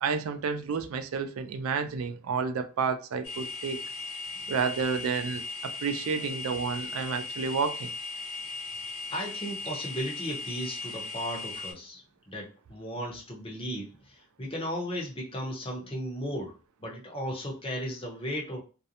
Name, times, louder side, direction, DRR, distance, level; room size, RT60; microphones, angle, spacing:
voice 1, 0.0-3.8 4.5-7.9, right 5 dB, 85° right, 0.4 m, -30 dB
sound 1, 3.2-11.7, left 3 dB, 75° left, 0.9 m, -38 dB
voice 2, 9.1-18.6, equal, 25° left, 0.7 m, -36 dB
2.5 x 2.1 x 2.7 m
head